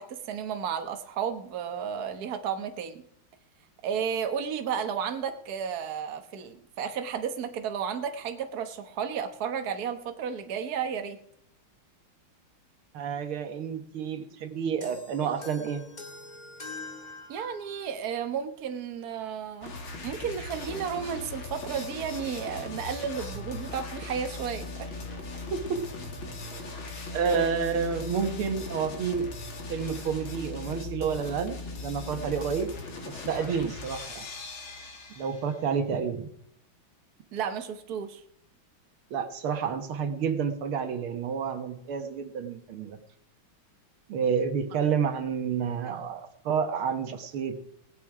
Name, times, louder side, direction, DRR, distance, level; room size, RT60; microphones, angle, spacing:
voice 1, 0.0-3.0 3.8-11.2 17.3-19.7 20.0-24.9 33.6-33.7 37.3-38.2, right 7 dB, 50° right, 7 dB, 1.5 m, -33 dB
voice 2, 12.9-15.8 25.5-25.8 27.1-29.3 29.7-32.7 33.1-34.3 35.2-36.3 39.1-43.0 44.1-47.6, right 6 dB, 85° right, 8 dB, 2.2 m, -29 dB
sound 1, 14.8-18.0, left 2 dB, 20° left, 2.2 m, -44 dB
sound 2, 19.6-35.6, left 3 dB, 70° left, 2.9 m, -39 dB
Wind instrument woodwind instrument, 20.7-29.8, left 10 dB, 45° left, 3.0 m, -51 dB
18.0 x 11.0 x 4.9 m, 0.71 s
omnidirectional pair, 2.3 m